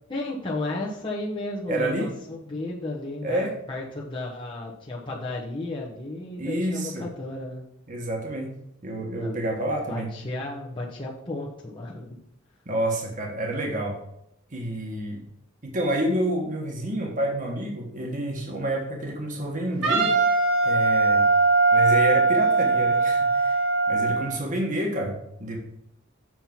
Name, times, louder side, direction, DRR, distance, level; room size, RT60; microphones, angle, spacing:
voice 1, 0.1-7.6 9.2-9.4 9.9-12.2, left 2 dB, 25° left, -4 dB, 1.1 m, -33 dB
voice 2, 1.7-2.1 3.2-3.6 6.4-7.1 7.9-8.5 8.8-10.1 12.6-14.0 14.5-15.2 15.6-20.1 20.6-21.3 21.7-25.6, right 1 dB, 40° right, 0 dB, 1.5 m, -29 dB
Wind instrument woodwind instrument, 19.8-24.3, right 3 dB, 65° right, 2.1 m, -20 dB
7.4 x 4.4 x 5.9 m, 0.76 s
head